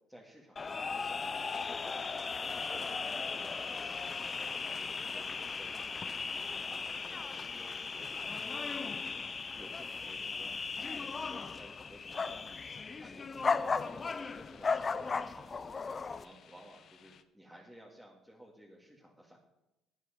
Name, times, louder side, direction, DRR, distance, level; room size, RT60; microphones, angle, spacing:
voice 1, 0.1-1.3 1.7-9.2 9.5-19.4, equal, ahead, -4 dB, 2.1 m, -56 dB
sound 1, 0.6-16.2, left 4 dB, 30° left, 0.5 m, -37 dB
sound 2, 3.8-17.2, left 8 dB, 55° left, 0.8 m, -62 dB
12.0 x 8.3 x 5.1 m, 0.93 s
supercardioid pair, 85°, 0 cm